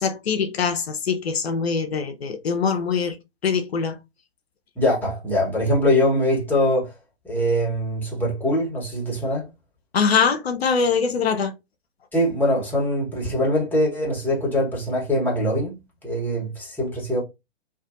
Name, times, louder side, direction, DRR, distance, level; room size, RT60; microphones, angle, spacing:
voice 1, 0.0-3.2 3.4-4.0 9.9-11.5, left 6 dB, 75° left, 0.5 m, -23 dB
voice 2, 4.8-6.9 7.2-9.4 12.1-15.8 16.0-17.2, left 1 dB, 5° left, 1.1 m, -22 dB
2.6 x 2.4 x 2.4 m
figure-of-eight pair, 115°, 31 cm